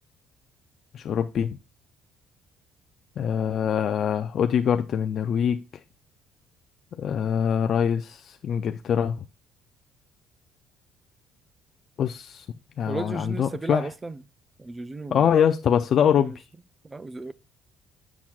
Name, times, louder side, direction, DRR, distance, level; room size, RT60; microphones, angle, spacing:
voice 1, 0.9-1.5 3.2-5.6 7.0-8.2 8.4-9.1 12.0-12.4 12.8-13.9 15.1-16.3, left 8 dB, 55° left, 0.3 m, -23 dB
voice 2, 12.9-14.2 14.6-15.4 16.1-16.4 16.8-17.3, right 3 dB, 20° right, 0.4 m, -34 dB
7.2 x 5.9 x 2.3 m
cardioid pair, 100°, 0 cm